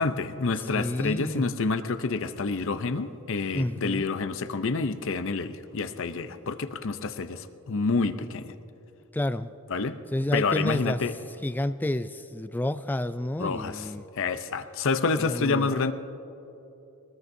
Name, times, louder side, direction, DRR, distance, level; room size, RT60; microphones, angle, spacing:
voice 1, 0.0-8.5 9.7-10.0 10.3-11.1 13.4-13.9 14.2-15.9, left 4 dB, 60° left, 10 dB, 0.6 m, -28 dB
voice 2, 0.7-1.5 3.5-4.1 9.1-9.5 10.1-11.0 11.4-14.0 15.2-15.9, left 1 dB, 10° left, 11 dB, 0.3 m, -30 dB
22.0 x 20.0 x 2.7 m, 3.0 s
head